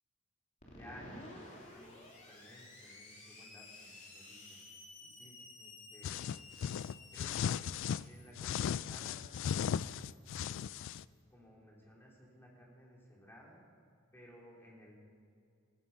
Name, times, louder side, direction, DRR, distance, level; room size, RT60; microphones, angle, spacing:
Screech, 0.6-11.1, left 2 dB, 35° left, 3.2 m, -55 dB
voice 1, 0.7-4.6 5.0-6.4 7.1-7.5 8.0-9.8 10.3-10.6 11.3-13.6 14.1-15.0, equal, 10° left, -3 dB, 3.4 m, -57 dB
sound 1, 6.0-8.0 8.4-11.0, left 8 dB, 65° left, 0.3 m, -36 dB
15.0 x 14.5 x 5.5 m, 2.3 s
head